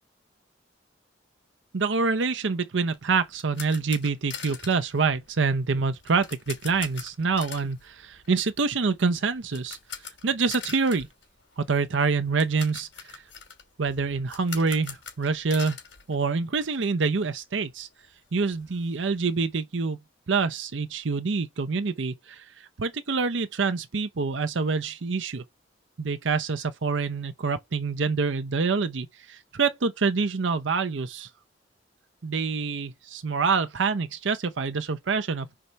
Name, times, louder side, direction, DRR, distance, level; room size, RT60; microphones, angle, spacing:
voice 1, 1.7-9.8 10.2-11.1 11.6-13.2 13.8-15.8 16.1-17.9 18.3-20.0 20.3-25.4 26.0-31.3 32.2-35.6, right 4 dB, 80° right, 0.7 m, -26 dB
sound 1, 2.9-16.9 17.1-17.3 17.7-17.8 18.0-19.6, left 7 dB, 75° left, 2.8 m, -43 dB
4.8 x 4.1 x 5.6 m
head